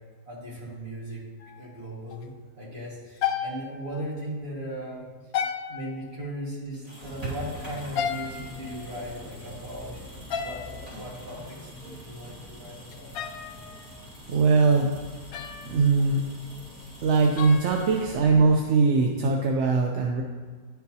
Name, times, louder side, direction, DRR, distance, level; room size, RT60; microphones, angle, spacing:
voice 1, 0.3-1.2 1.6-5.1 5.7-9.9 10.3-13.1, right 1 dB, 45° right, -5 dB, 1.9 m, -38 dB
sound 1, 1.4-1.8 2.1-2.2 3.2-4.3 5.3-6.2 7.8-9.2 10.3-10.9 12.9-14.1 15.3-16.0 17.2-18.5, left 8 dB, 85° left, 1.0 m, -34 dB
sound 2, 6.7-18.6, equal, 25° right, 2.1 m, -48 dB
sound 3, 7.0-18.5, left 1 dB, 5° left, 1.3 m, -46 dB
voice 2, 14.3-14.9 15.7-16.3 17.0-20.2, right 4 dB, 65° right, 1 dB, 0.8 m, -21 dB
10.0 x 4.6 x 2.7 m, 1.5 s
omnidirectional pair, 1.5 m